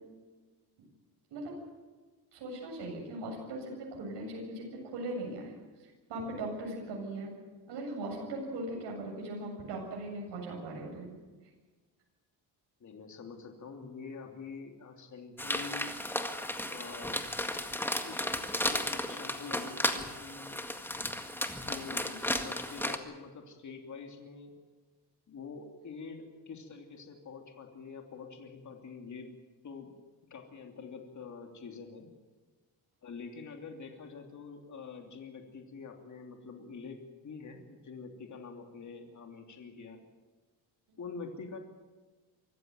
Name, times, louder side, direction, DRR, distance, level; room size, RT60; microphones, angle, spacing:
voice 1, 2.3-5.5 5.8-7.3 7.7-11.1 21.9-22.2, right 1 dB, 80° right, 0 dB, 7.7 m, -39 dB
voice 2, 12.8-15.9 16.7-17.2 18.0-20.6 21.7-24.5 25.3-29.3 29.6-29.9 30.3-32.1 33.0-37.0 37.2-40.0 41.0-41.6, left 5 dB, 45° left, 3 dB, 3.1 m, -46 dB
sound 1, 15.4-23.0, left 1 dB, 5° left, 1.8 m, -34 dB
25.0 x 14.5 x 9.2 m, 1.3 s
cardioid pair, 125°, 41 cm